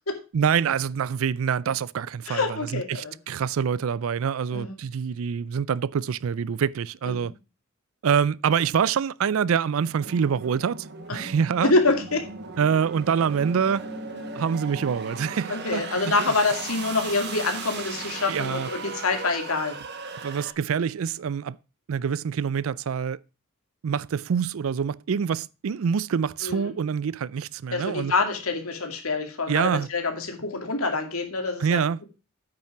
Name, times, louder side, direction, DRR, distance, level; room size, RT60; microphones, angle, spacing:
voice 1, 0.3-7.3 8.0-11.7 12.6-13.9 14.4-16.2 18.3-18.7 20.2-21.6 21.9-23.2 23.8-28.1 29.5-29.9 31.6-32.0, right 7 dB, 70° right, 0.4 m, -26 dB
voice 2, 2.3-3.1 4.5-4.7 7.2-7.3 11.1-11.3 11.6-12.2 15.5-19.8 26.4-26.7 27.7-31.8, left 3 dB, 80° left, 2.3 m, -26 dB
sound 1, 10.0-20.5, right 5 dB, 50° right, 1.3 m, -38 dB
sound 2, 13.1-19.4, left 2 dB, 50° left, 1.6 m, -44 dB
8.9 x 5.7 x 5.8 m
head